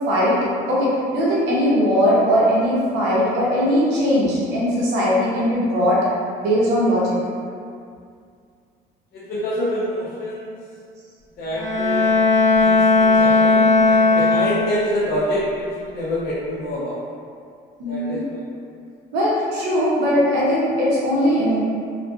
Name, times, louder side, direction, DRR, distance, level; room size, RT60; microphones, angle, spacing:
voice 1, 0.1-0.4 0.7-6.0 6.4-7.2 17.8-18.2 19.1-21.6, equal, 80° right, -7 dB, 0.9 m, -19 dB
voice 2, 9.1-10.5 11.4-12.1 12.6-17.0 17.9-18.4, left 1 dB, 65° left, -7 dB, 0.5 m, -26 dB
Bowed string instrument, 11.5-14.9, left 3 dB, 15° left, 0.7 m, -16 dB
2.4 x 2.4 x 2.5 m, 2.2 s
cardioid pair, 140°, 17 cm